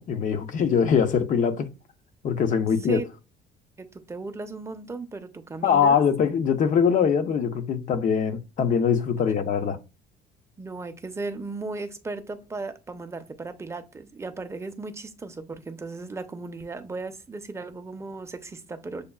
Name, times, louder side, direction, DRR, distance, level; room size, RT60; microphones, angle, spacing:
voice 1, 0.0-1.7 2.2-3.0 5.6-9.8, left 7 dB, 50° left, 0.6 m, -22 dB
voice 2, 3.8-6.0 10.6-19.0, right 3 dB, 15° right, 0.5 m, -36 dB
6.5 x 2.3 x 2.3 m
cardioid pair, 110°, 17 cm